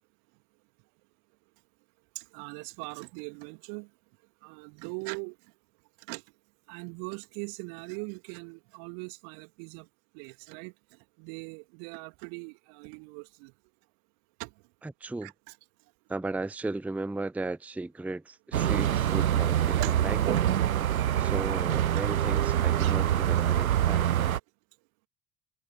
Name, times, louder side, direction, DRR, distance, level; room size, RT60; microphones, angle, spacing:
voice 1, 2.2-3.9 4.4-5.4 6.1-6.2 6.7-9.9 10.1-10.7 11.2-13.5 14.4-14.5 15.2-15.5 19.8-19.9, right 40 dB or more, 55° right, 2.3 m, -40 dB
voice 2, 14.8-15.3 16.1-20.5 21.2-24.1, right 2 dB, 5° right, 0.7 m, -36 dB
sound 1, 18.5-24.4, right 11 dB, 80° right, 0.6 m, -25 dB
figure-of-eight pair, 60°, 41 cm